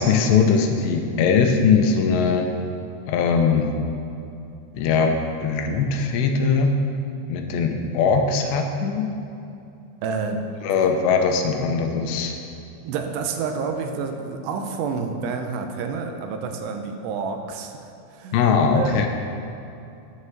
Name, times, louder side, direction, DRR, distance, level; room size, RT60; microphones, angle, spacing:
voice 1, 0.0-2.5 3.1-3.7 4.7-6.7 7.3-9.0 10.6-12.3 18.3-19.1, left 5 dB, 85° left, 4 dB, 2.9 m, -20 dB
voice 2, 10.0-10.4 10.7-10.9 12.8-17.8 18.1-18.4 18.7-19.1, right 5 dB, 80° right, 5 dB, 2.8 m, -29 dB
9.6 x 6.6 x 7.3 m, 2.7 s
omnidirectional pair, 5.0 m